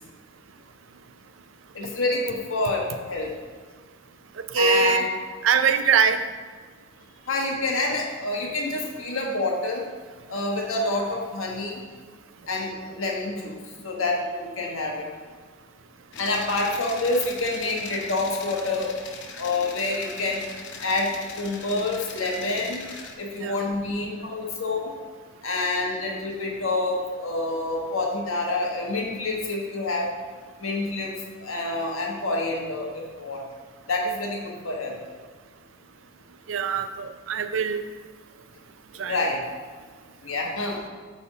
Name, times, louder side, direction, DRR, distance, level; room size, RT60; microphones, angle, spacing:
voice 1, 1.7-3.3 4.5-5.1 7.3-9.8 10.3-11.8 12.5-13.6 13.8-15.0 16.2-18.9 19.4-20.4 20.8-22.8 23.2-24.9 25.4-30.1 30.6-31.1 31.4-33.4 33.9-34.9 39.1-39.4 40.2-40.8, left 2 dB, 85° left, -1 dB, 1.4 m, -27 dB
voice 2, 4.5-5.0 5.4-6.2 23.4-23.5 36.5-37.8 39.0-39.2, right 6 dB, 75° right, 9 dB, 0.5 m, -22 dB
sound 1, 16.1-23.1, left 4 dB, 60° left, 0.8 m, -40 dB
8.4 x 3.5 x 5.4 m, 1.5 s
head